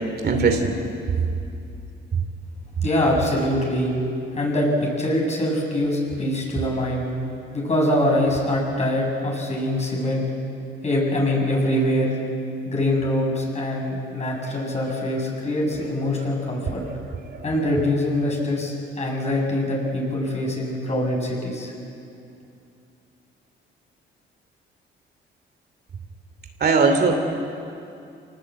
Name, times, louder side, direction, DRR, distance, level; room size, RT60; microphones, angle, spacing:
voice 1, 0.2-0.7 26.6-27.2, right 4 dB, 55° right, 5 dB, 3.0 m, -18 dB
voice 2, 2.8-3.9 4.3-7.0 7.5-10.2 10.8-12.2 12.6-16.8 17.4-21.7, left 1 dB, 35° left, -1 dB, 7.8 m, -23 dB
26.0 x 19.5 x 8.6 m, 2.6 s
cardioid pair, 90°, 20 cm